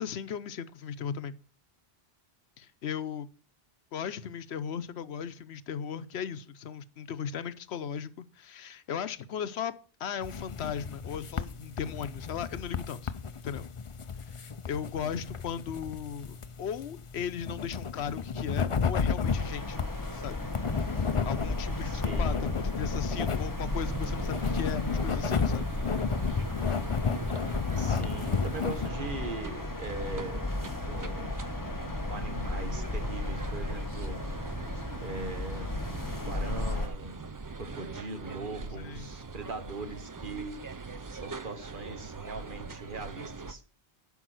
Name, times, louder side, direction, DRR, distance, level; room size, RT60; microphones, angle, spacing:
voice 1, 0.0-1.3 2.6-3.3 3.9-13.1 13.4-13.7 14.3-19.8 20.1-25.7 38.7-39.1, left 7 dB, 85° left, 1.0 m, -37 dB
sound 1, 10.2-28.9, left 6 dB, 35° left, 0.6 m, -33 dB
sound 2, 19.2-36.9, left 2 dB, 20° left, 1.3 m, -34 dB
voice 2, 21.8-22.6 27.7-31.3 32.1-34.2 35.0-35.7 36.2-37.2 37.6-40.6 41.1-43.6, right 3 dB, 55° right, 1.4 m, -40 dB
sound 3, 23.7-43.5, right 4 dB, 30° right, 0.4 m, -42 dB
12.0 x 5.5 x 6.2 m
omnidirectional pair, 1.1 m